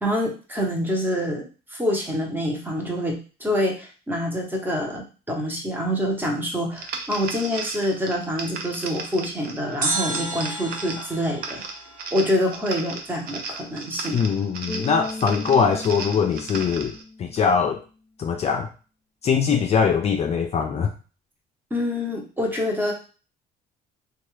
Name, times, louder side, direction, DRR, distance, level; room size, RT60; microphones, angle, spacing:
voice 1, 0.0-11.6 12.1-14.2 21.7-22.9, left 1 dB, 10° right, 0 dB, 0.8 m, -26 dB
sound 1, 6.7-17.0, right 4 dB, 65° right, 0.6 m, -36 dB
sound 2, 9.8-12.9 13.1-13.2, right 2 dB, 45° right, 1.4 m, -31 dB
voice 2, 14.1-17.8 18.2-18.7 19.2-20.9, left 6 dB, 40° left, 3 dB, 0.4 m, -22 dB
Bass guitar, 14.7-17.8, left 2 dB, 25° left, 0.9 m, -37 dB
2.8 x 2.3 x 3.1 m, 0.35 s
cardioid pair, 110°, 17 cm